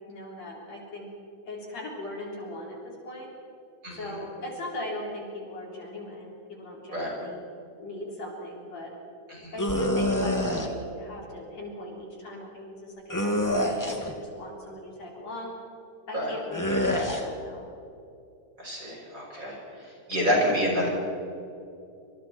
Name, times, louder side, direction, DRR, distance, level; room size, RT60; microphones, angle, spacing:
voice 1, 0.1-1.1 1.4-3.3 3.9-7.4 7.8-8.9 9.5-15.5 16.1-17.7, left 1 dB, 55° left, -2 dB, 4.9 m, -39 dB
sound 1, 9.6-10.7 13.1-14.1 16.5-17.2, left 1 dB, 10° left, 1.3 m, -26 dB
voice 2, 18.6-20.9, equal, 25° right, -3 dB, 6.4 m, -28 dB
28.0 x 27.0 x 4.4 m, 2.6 s
omnidirectional pair, 3.6 m